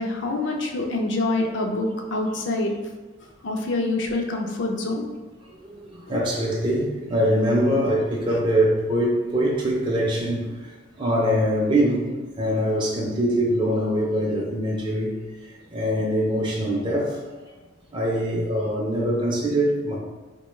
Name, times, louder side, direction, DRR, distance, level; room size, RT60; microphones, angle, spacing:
voice 1, 0.0-2.7 3.2-5.0, left 2 dB, 55° left, 1 dB, 0.5 m, -26 dB
voice 2, 5.5-12.1 12.4-15.1 15.4-17.2 17.9-20.0, equal, 20° right, -3 dB, 0.4 m, -23 dB
4.3 x 2.2 x 3.1 m, 1.3 s
head